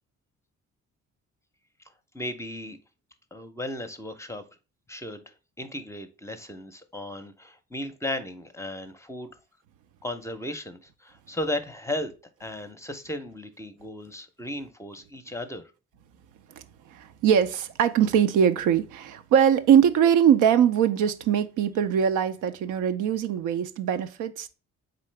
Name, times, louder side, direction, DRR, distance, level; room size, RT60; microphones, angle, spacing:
voice 1, 2.1-2.8 3.3-4.4 4.9-5.2 5.6-9.3 10.0-12.1 12.4-15.7, left 1 dB, 10° left, 0.6 m, -35 dB
voice 2, 16.9-24.5, right 8 dB, 85° right, 0.5 m, -22 dB
3.9 x 3.7 x 3.2 m
cardioid pair, 90°, 30 cm